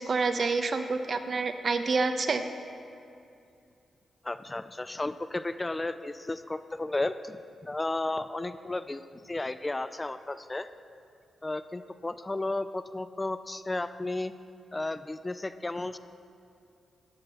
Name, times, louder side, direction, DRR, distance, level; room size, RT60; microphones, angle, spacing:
voice 1, 0.0-2.4, right 4 dB, 50° right, 8 dB, 0.7 m, -28 dB
voice 2, 4.2-7.4 7.6-10.7 11.4-14.3 14.7-16.0, left 2 dB, 20° left, 12 dB, 0.3 m, -33 dB
14.0 x 11.0 x 2.9 m, 2.6 s
cardioid pair, 85°, 0 cm